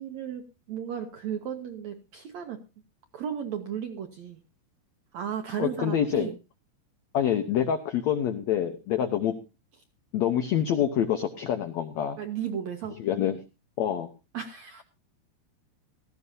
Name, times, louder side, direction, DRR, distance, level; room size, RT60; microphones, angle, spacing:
voice 1, 0.0-2.6 3.1-4.4 5.1-6.3 9.1-9.3 12.2-13.0 14.3-14.8, right 8 dB, 75° right, 6 dB, 1.6 m, -35 dB
voice 2, 5.6-6.3 7.1-9.3 10.1-12.2 13.0-13.4 13.8-14.1, left 9 dB, 90° left, 8 dB, 1.5 m, -26 dB
17.0 x 14.0 x 2.7 m, 0.28 s
omnidirectional pair, 4.5 m